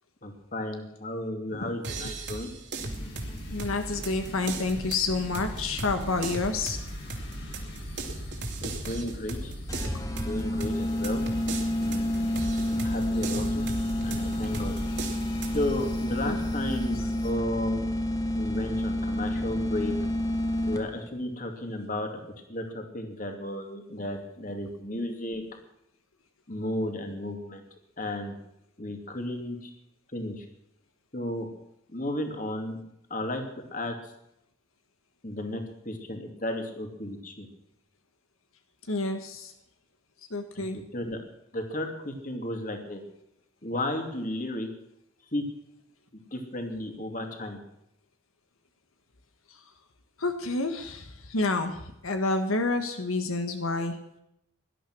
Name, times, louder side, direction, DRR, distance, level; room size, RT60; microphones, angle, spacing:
voice 1, 0.2-2.5 8.6-9.5 10.2-11.2 11.8-12.3 12.7-13.6 14.0-14.7 15.5-17.9 18.3-20.0 20.6-22.1 22.5-25.4 26.5-27.6 28.0-28.4 28.8-29.7 30.1-30.4 31.1-31.5 31.9-32.8 33.1-33.4 33.7-33.9 35.2-37.5 40.5-41.2 41.5-43.0 43.6-44.7 45.3-45.4 46.3-47.6, left 1 dB, 40° left, 4 dB, 2.7 m, -33 dB
sound 1, 1.8-15.6, right 2 dB, 55° right, 3.0 m, -38 dB
sound 2, 2.8-17.3, equal, 55° left, 4.3 m, -41 dB
voice 2, 3.5-6.8 16.2-16.4 38.9-39.5 40.3-40.8 49.5-49.6 50.2-54.0, left 3 dB, 85° left, 7 dB, 1.6 m, -29 dB
sound 3, 9.7-21.1, left 1 dB, 15° left, 1.6 m, -29 dB
18.0 x 12.0 x 6.2 m, 0.81 s
head